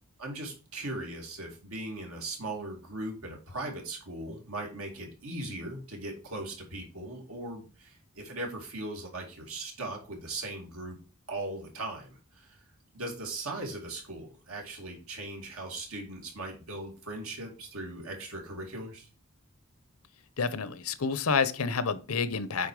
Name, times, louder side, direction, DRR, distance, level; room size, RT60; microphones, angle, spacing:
voice 1, 0.2-11.0 11.3-12.6 12.9-19.1, right 2 dB, 80° right, 2.5 m, -39 dB
voice 2, 20.4-22.7, left 5 dB, 85° left, 0.8 m, -29 dB
8.6 x 4.2 x 4.8 m
head